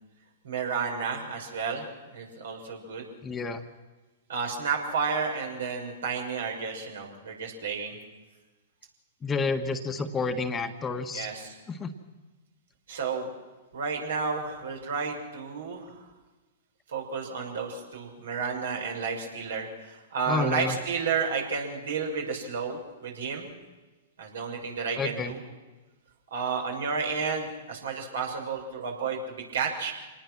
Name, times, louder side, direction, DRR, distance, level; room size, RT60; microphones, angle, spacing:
voice 1, 0.4-3.0 4.3-8.0 11.1-11.6 12.9-13.3 13.7-16.0 16.9-23.5 24.2-25.4 26.3-29.9, right 5 dB, 75° right, 2 dB, 5.9 m, -31 dB
voice 2, 3.2-3.6 9.2-11.3 11.7-11.9 20.3-20.8 25.0-25.3, left 4 dB, 20° left, 7 dB, 1.6 m, -30 dB
26.5 x 19.0 x 6.2 m, 1.2 s
hypercardioid pair, 110°, 0 cm